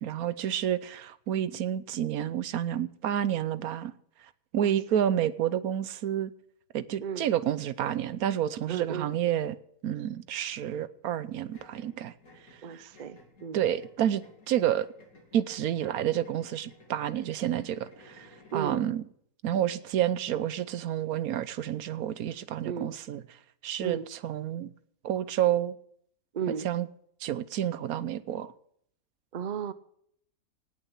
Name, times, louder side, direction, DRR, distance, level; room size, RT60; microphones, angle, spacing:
voice 1, 0.0-3.9 4.5-6.3 6.7-9.6 9.8-12.1 12.7-12.9 13.5-14.9 15.3-19.0 19.4-23.2 23.6-24.7 25.0-25.7 26.5-26.9 27.2-28.5, right 10 dB, 75° right, 1.2 m, -29 dB
voice 2, 8.7-9.1 12.6-13.6 18.5-18.8 22.6-22.9 23.8-24.1 26.3-26.7 29.3-29.7, right 7 dB, 50° right, 0.5 m, -34 dB
sound 1, 11.5-18.9, left 2 dB, 70° left, 2.9 m, -56 dB
18.0 x 7.0 x 7.1 m
omnidirectional pair, 1.6 m